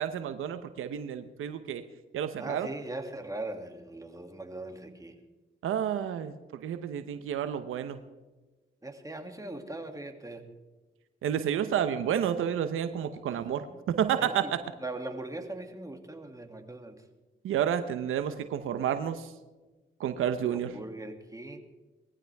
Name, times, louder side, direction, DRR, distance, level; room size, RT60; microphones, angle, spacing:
voice 1, 0.0-1.8 2.1-2.7 5.6-6.3 6.6-8.0 11.2-14.6 17.4-19.3 20.0-20.7, right 9 dB, 90° right, 10 dB, 0.9 m, -30 dB
voice 2, 2.4-5.2 8.8-10.6 13.3-13.8 14.2-14.5 14.8-17.0 20.5-21.6, right 2 dB, 15° right, 4 dB, 2.5 m, -40 dB
20.5 x 15.0 x 3.5 m, 1.2 s
cardioid pair, 55°, 21 cm